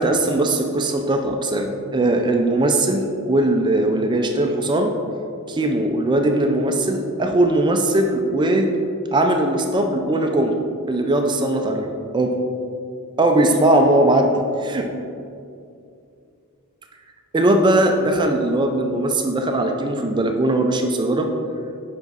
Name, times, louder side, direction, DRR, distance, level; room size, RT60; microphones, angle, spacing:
voice 1, 0.0-4.9 5.5-8.7 9.1-11.9 12.1-12.4 13.2-14.3 14.6-14.9 17.3-21.3, right 1 dB, 20° right, 4 dB, 0.4 m, -19 dB
7.3 x 5.4 x 4.0 m, 2.5 s
head